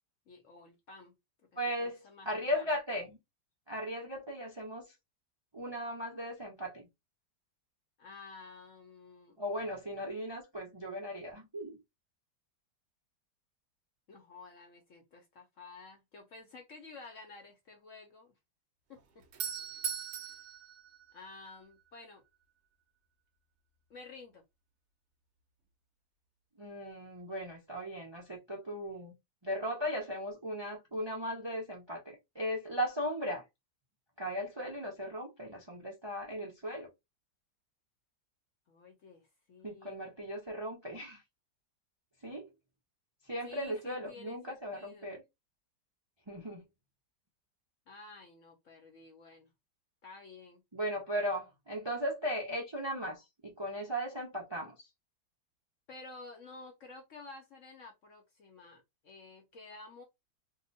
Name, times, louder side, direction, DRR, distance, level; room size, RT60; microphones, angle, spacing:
voice 1, 0.3-1.1 1.8-2.7 8.0-9.4 14.1-18.4 18.9-19.3 20.1-20.4 21.1-22.2 23.9-24.4 38.7-40.0 43.4-45.2 47.9-49.5 50.0-50.6 55.9-60.0, left 3 dB, 60° left, 0.9 m, -52 dB
voice 2, 1.5-2.0 2.3-3.2 3.7-4.9 5.5-6.9 9.4-11.8 26.6-29.1 29.4-33.4 34.2-36.9 39.6-41.2 42.2-42.5 43.3-45.2 46.3-46.6 50.7-54.9, equal, 35° right, 0.4 m, -37 dB
Doorbell, 19.0-21.8, right 7 dB, 65° right, 0.9 m, -40 dB
2.9 x 2.2 x 3.9 m
omnidirectional pair, 1.9 m